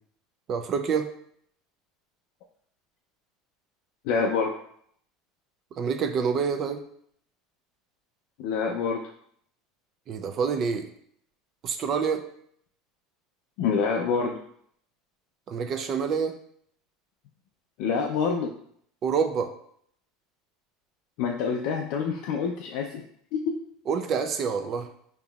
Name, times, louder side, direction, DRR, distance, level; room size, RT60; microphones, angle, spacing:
voice 1, 0.5-1.1 5.8-6.8 10.1-10.9 11.6-12.2 15.5-16.4 19.0-19.5 23.9-24.9, right 6 dB, 40° right, 8 dB, 0.4 m, -27 dB
voice 2, 4.0-4.5 8.4-9.1 13.6-14.4 17.8-18.5 21.2-23.0 23.3-23.6, left 5 dB, 65° left, 1 dB, 0.4 m, -26 dB
5.3 x 2.9 x 2.3 m, 0.66 s
supercardioid pair, 120°, 0 cm